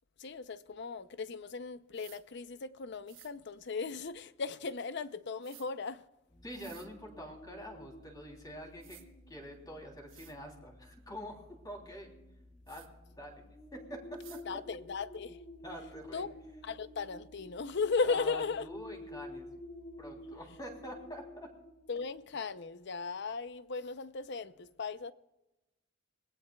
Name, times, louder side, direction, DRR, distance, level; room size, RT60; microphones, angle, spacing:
voice 1, 0.2-6.0 14.5-15.4 16.1-16.3 16.6-18.7 21.9-25.1, left 4 dB, 60° left, 0.6 m, -36 dB
sound 1, 1.9-2.2 3.1-3.3 5.4-5.7 6.5-6.9 8.3-8.4 8.8-9.1 9.7-9.8 10.1-10.4 12.7-12.9 14.2-14.4, right 13 dB, 85° right, 1.2 m, -55 dB
sound 2, 6.3-22.3, left 1 dB, 35° left, 2.5 m, -51 dB
voice 2, 6.4-9.0 9.3-12.1 12.7-12.9 13.2-13.4 13.7-14.0 15.6-16.3 18.0-19.5 20.0-21.5, equal, 20° left, 3.2 m, -46 dB
24.5 x 18.5 x 2.3 m
head